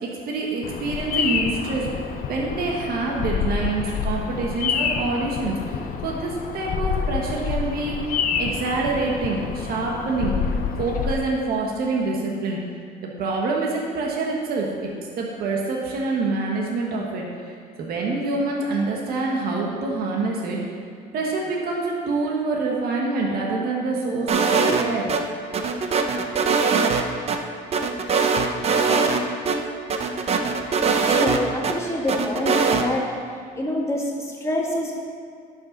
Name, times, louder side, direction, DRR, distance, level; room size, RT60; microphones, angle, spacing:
voice 1, 0.0-8.0 8.4-10.4 10.8-12.6 13.2-14.7 15.2-17.5 17.8-20.6 21.1-25.2, right 3 dB, 65° right, -2 dB, 1.4 m, -26 dB
Bird vocalization bird call bird song, 0.6-11.1, left 6 dB, 55° left, 0.7 m, -28 dB
sound 1, 24.3-25.2 25.5-27.4 27.7-29.2 29.5-29.6 29.9-31.7 32.1-32.8, right 5 dB, 40° right, 0.7 m, -21 dB
voice 2, 31.1-33.1 33.5-34.9, left 1 dB, 15° left, -2 dB, 1.6 m, -26 dB
11.0 x 5.7 x 4.0 m, 2.2 s
cardioid pair, 110°, 17 cm